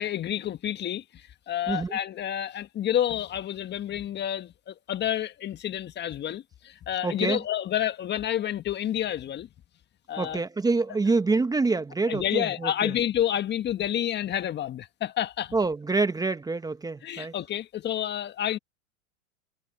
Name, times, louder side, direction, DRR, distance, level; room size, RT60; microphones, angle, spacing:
voice 1, 0.0-9.5 10.1-10.4 12.1-15.5 17.0-18.6, left 11 dB, 25° left, 1.6 m, -29 dB
voice 2, 1.7-2.0 7.0-7.4 10.2-12.9 15.5-17.3, right 3 dB, 10° right, 1.4 m, -26 dB
hypercardioid pair, 110°, 41 cm